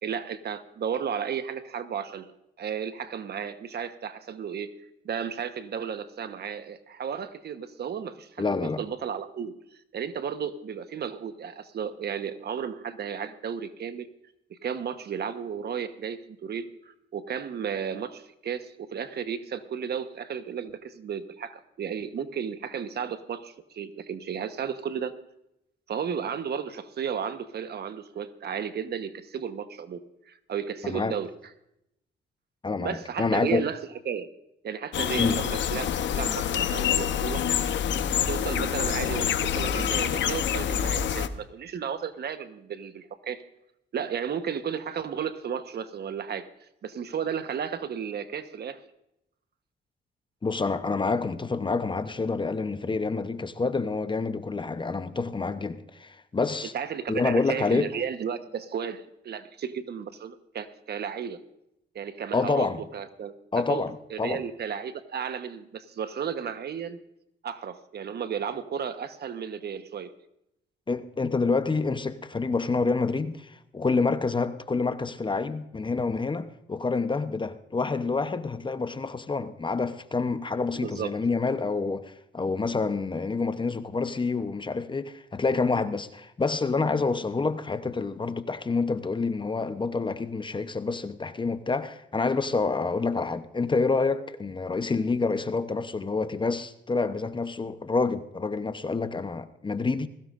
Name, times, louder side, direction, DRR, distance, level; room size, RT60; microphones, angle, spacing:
voice 1, 0.0-2.3 2.6-4.7 5.0-9.5 9.9-14.1 14.5-25.1 25.9-30.0 30.3-31.3 32.8-33.8 34.0-34.3 34.6-37.5 38.2-43.4 43.9-46.5 46.8-48.8 56.7-61.4 61.9-63.3 63.7-63.8 64.1-67.0 67.4-70.1 80.7-81.1, right 7 dB, 55° right, 1.2 m, -33 dB
voice 2, 8.4-8.8 30.8-31.1 32.6-33.6 35.2-35.4 50.4-56.7 57.1-57.9 62.3-62.8 63.5-64.4 70.9-100.1, left 4 dB, 25° left, 0.9 m, -28 dB
sound 1, 34.9-41.3, left 9 dB, 65° left, 0.9 m, -27 dB
20.5 x 16.5 x 2.6 m
cardioid pair, 90°, 20 cm